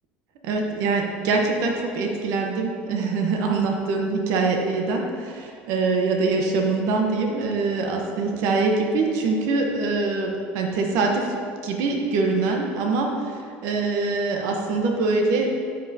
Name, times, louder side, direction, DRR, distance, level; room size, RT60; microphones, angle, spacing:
voice 1, 0.4-11.3 11.6-15.5, right 3 dB, 70° right, 2 dB, 1.1 m, -24 dB
13.0 x 5.5 x 2.8 m, 2.1 s
hypercardioid pair, 80°, 6 cm